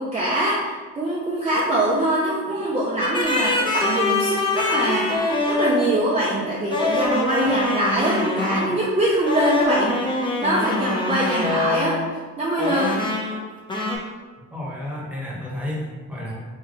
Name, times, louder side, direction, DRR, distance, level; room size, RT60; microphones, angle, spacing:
voice 1, 0.0-10.0 10.4-12.0 12.4-13.0, right 1 dB, 20° right, -5 dB, 0.7 m, -23 dB
sound 1, 3.0-5.9 6.7-8.8 9.3-12.1 12.6-13.4 13.7-14.0, left 2 dB, 15° left, 1.0 m, -24 dB
voice 2, 14.5-16.3, left 1 dB, 5° right, -4 dB, 1.3 m, -31 dB
3.6 x 3.0 x 3.8 m, 1.4 s
cardioid pair, 90°, 30 cm